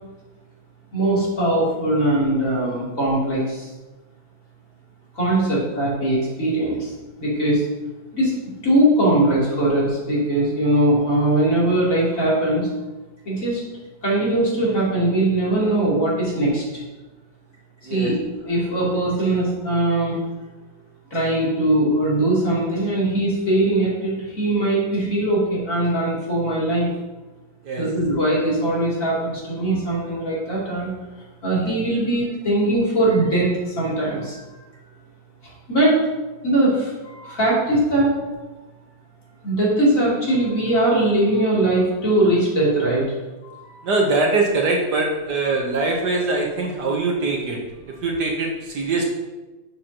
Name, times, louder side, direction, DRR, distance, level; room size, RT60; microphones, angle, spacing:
voice 1, 0.9-3.4 5.2-6.8 7.2-7.6 8.1-8.3 8.6-12.6 13.3-13.6 14.0-16.6 17.9-18.2 18.5-20.1 21.1-26.9 27.8-30.9 31.4-33.5 33.8-34.3 35.7-36.0 36.4-38.1 39.4-43.0, right 1 dB, 40° left, -7 dB, 3.3 m, -20 dB
voice 2, 17.8-18.2 27.6-27.9 43.8-49.0, right 3 dB, 60° right, 0 dB, 1.5 m, -23 dB
12.5 x 6.8 x 2.9 m, 1.2 s
omnidirectional pair, 2.2 m